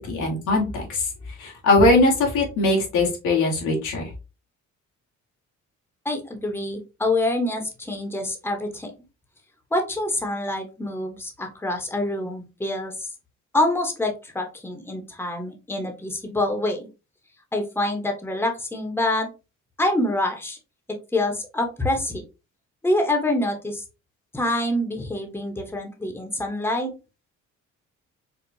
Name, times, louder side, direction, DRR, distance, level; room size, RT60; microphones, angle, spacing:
voice 1, 0.1-1.1 1.4-4.1, left 2 dB, 90° left, -1 dB, 1.5 m, -20 dB
voice 2, 6.0-8.9 9.7-13.1 13.5-16.9 17.5-19.3 19.8-20.6 21.1-22.2 22.8-23.8 24.3-26.9, left 1 dB, 5° left, 4 dB, 0.9 m, -26 dB
4.6 x 2.4 x 2.6 m, 0.29 s
cardioid pair, 90°, 30 cm